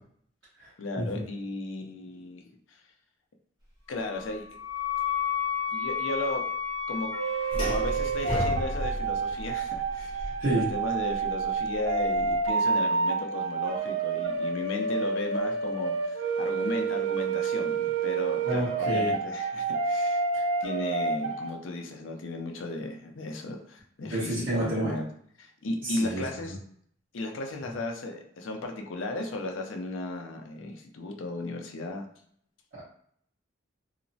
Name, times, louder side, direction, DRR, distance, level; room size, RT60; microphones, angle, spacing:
voice 1, 0.8-2.5 3.9-4.5 5.7-6.5 6.9-7.1 7.5-20.2 20.6-25.1 25.4-26.6 27.1-32.0, left 2 dB, 70° left, 3 dB, 0.5 m, -35 dB
Wind instrument woodwind instrument, 4.0-8.7, left 7 dB, 20° right, 0.8 m, -33 dB
sound 1, 7.1-21.5, right 4 dB, 85° right, 0.5 m, -29 dB
sound 2, 7.5-12.5, equal, 30° left, 0.7 m, -33 dB
voice 2, 18.4-19.1 20.3-20.4 24.0-24.9 25.8-26.3 32.7-32.8, right 1 dB, 65° right, -12 dB, 1.1 m, -29 dB
2.8 x 2.0 x 2.6 m, 0.65 s
head